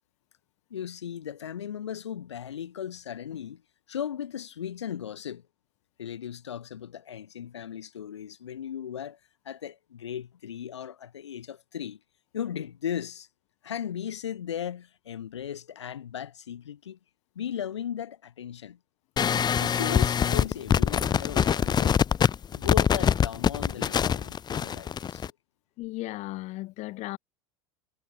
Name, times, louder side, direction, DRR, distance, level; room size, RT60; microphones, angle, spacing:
voice 1, 0.7-3.6 3.9-5.4 6.0-9.2 9.4-12.0 12.3-13.3 13.6-17.0 17.3-18.8 19.6-22.0 22.5-25.2, left 9 dB, 90° left, 6.1 m, -37 dB
sound 1, 19.2-25.3, left 8 dB, 30° left, 1.3 m, -24 dB
voice 2, 25.8-27.2, left 19 dB, 55° left, 7.8 m, -35 dB
hypercardioid pair, 90°, 14 cm